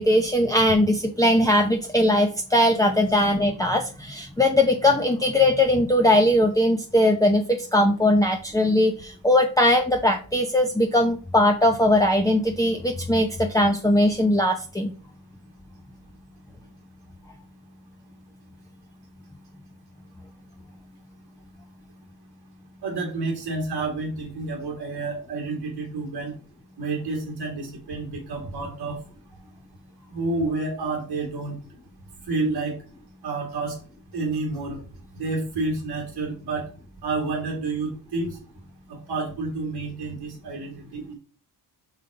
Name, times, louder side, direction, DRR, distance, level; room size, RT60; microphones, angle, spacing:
voice 1, 0.0-14.9, left 1 dB, 10° left, 1 dB, 0.8 m, -20 dB
voice 2, 22.8-26.3 26.8-29.0 30.1-31.5 32.3-32.7 33.2-33.7 34.1-34.8 35.1-36.6 37.0-38.4 38.9-41.1, right 3 dB, 85° right, -1 dB, 2.4 m, -29 dB
5.7 x 5.5 x 4.9 m, 0.38 s
cardioid pair, 95°, 42 cm